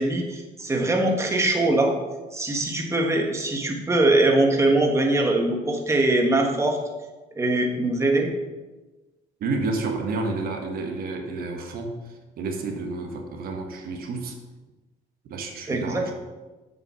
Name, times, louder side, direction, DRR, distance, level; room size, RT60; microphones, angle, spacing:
voice 1, 0.0-1.9 2.3-6.8 7.4-8.3 15.7-16.1, right 2 dB, 15° right, 2 dB, 1.3 m, -22 dB
voice 2, 9.4-12.0 12.4-14.3 15.3-16.1, right 3 dB, 60° right, 3 dB, 1.3 m, -30 dB
7.8 x 5.4 x 5.6 m, 1.2 s
cardioid pair, 110°, 17 cm